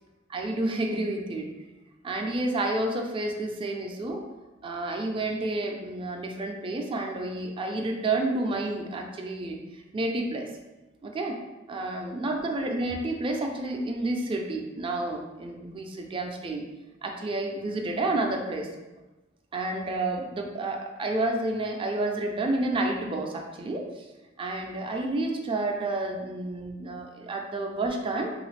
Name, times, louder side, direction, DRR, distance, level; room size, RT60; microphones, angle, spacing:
voice 1, 0.3-1.5 2.0-4.2 4.6-10.5 11.0-11.4 11.7-16.6 17.0-18.7 19.5-24.0 24.4-28.3, right 2 dB, 25° right, 2 dB, 0.3 m, -30 dB
3.1 x 2.4 x 3.2 m, 1.1 s
head